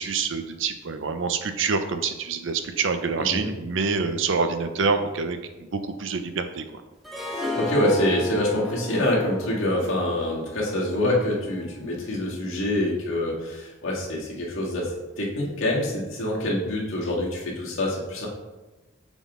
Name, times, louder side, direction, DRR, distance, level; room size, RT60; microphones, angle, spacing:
voice 1, 0.0-6.8, right 5 dB, 65° right, 8 dB, 0.6 m, -26 dB
Harp, 7.0-12.1, left 2 dB, ahead, 0.8 m, -35 dB
voice 2, 7.3-18.3, left 1 dB, 80° left, -4 dB, 1.8 m, -26 dB
7.0 x 3.7 x 3.7 m, 1.1 s
head